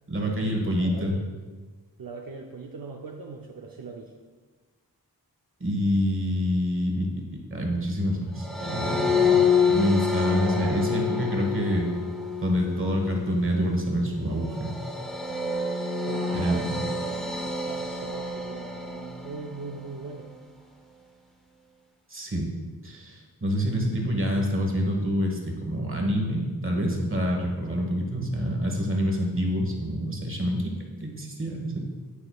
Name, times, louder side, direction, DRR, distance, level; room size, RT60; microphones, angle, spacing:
voice 1, 0.1-1.2 5.6-7.3 7.5-9.4 9.7-11.9 12.4-14.8 16.3-16.6 22.1-22.5 22.8-30.7 31.0-31.8, equal, 35° right, 1 dB, 1.3 m, -27 dB
voice 2, 0.7-1.2 2.0-4.1 16.0-20.3, right 4 dB, 65° right, 0 dB, 0.6 m, -40 dB
sound 1, 8.4-19.8, left 4 dB, ahead, 0.9 m, -28 dB
8.7 x 6.6 x 2.3 m, 1.4 s
wide cardioid pair, 70°, 37 cm